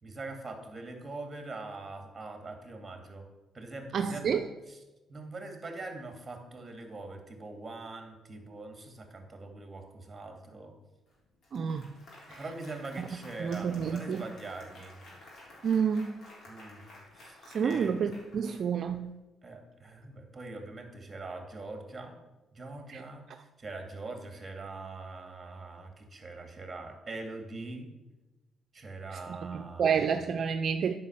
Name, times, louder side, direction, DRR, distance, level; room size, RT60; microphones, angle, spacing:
voice 1, 0.0-3.3 3.5-4.4 4.7-4.8 5.1-10.7 12.4-15.0 16.5-16.9 17.1-18.0 19.4-22.2 22.5-27.9 28.7-30.1, right 3 dB, 25° right, 4 dB, 2.2 m, -43 dB
voice 2, 3.9-4.4 11.5-11.9 12.3-12.4 13.4-14.2 15.6-16.2 17.5-19.1 22.9-23.0 29.4-30.9, right 7 dB, 55° right, 8 dB, 0.5 m, -29 dB
Applause, 11.1-11.2 11.4-19.0, left 1 dB, 55° left, 3.6 m, -53 dB
9.5 x 5.6 x 6.7 m, 1.1 s
cardioid pair, 90°, 0 cm